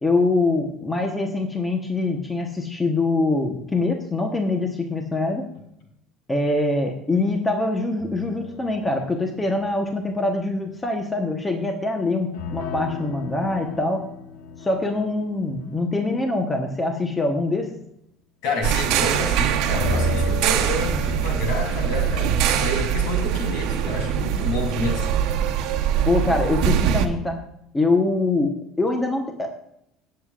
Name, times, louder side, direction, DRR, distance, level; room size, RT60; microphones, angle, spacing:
voice 1, 0.0-5.5 6.3-14.0 14.6-17.7 26.0-27.4 27.7-29.5, left 2 dB, 10° left, 3 dB, 1.1 m, -24 dB
sound 1, 8.0-10.5 12.3-16.8 19.7-25.2, left 3 dB, 90° left, 1.2 m, -35 dB
voice 2, 18.4-25.1, left 2 dB, 70° left, 1 dB, 3.4 m, -29 dB
sound 2, 18.6-27.1, right 9 dB, 70° right, 1.0 m, -23 dB
18.0 x 7.7 x 2.5 m, 0.79 s
cardioid pair, 145°, 0 cm